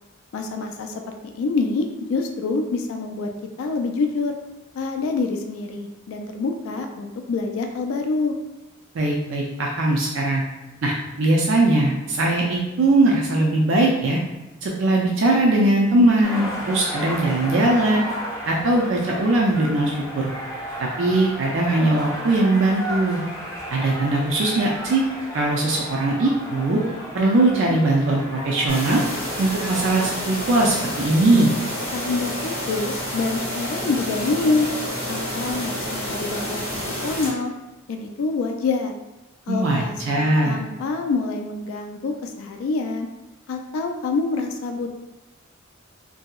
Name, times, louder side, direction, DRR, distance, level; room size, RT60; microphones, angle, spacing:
voice 1, 0.3-0.9 1.3-3.3 3.6-4.3 4.8-8.3 31.9-34.7 35.1-37.5 37.9-38.9 39.5-43.1 43.5-45.0, left 3 dB, 85° left, 4 dB, 0.3 m, -26 dB
voice 2, 8.9-10.4 10.8-14.2 14.6-18.0 18.5-20.3 21.0-23.2 23.7-25.0 25.3-26.8 27.1-29.0 29.4-31.5 39.5-40.6, right 2 dB, 60° right, -2 dB, 0.4 m, -20 dB
sound 1, 16.2-30.1, equal, 15° left, 0.7 m, -34 dB
sound 2, 28.7-37.3, equal, 60° left, 0.9 m, -29 dB
2.8 x 2.7 x 2.3 m, 1.1 s
head